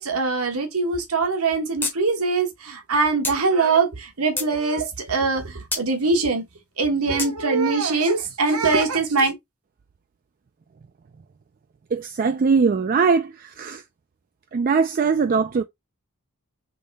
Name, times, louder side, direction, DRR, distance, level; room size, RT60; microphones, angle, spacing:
voice 1, 0.0-6.4 6.8-9.3, right 4 dB, 80° right, 1.3 m, -22 dB
sound 1, 1.8-2.0 2.3-2.4 3.2-3.4 4.0-4.5 5.7-5.9 7.2-7.3, left 3 dB, 10° left, 0.8 m, -27 dB
voice 2, 11.9-13.8 14.5-15.6, right 5 dB, 40° right, 0.3 m, -21 dB
3.8 x 3.2 x 4.0 m
head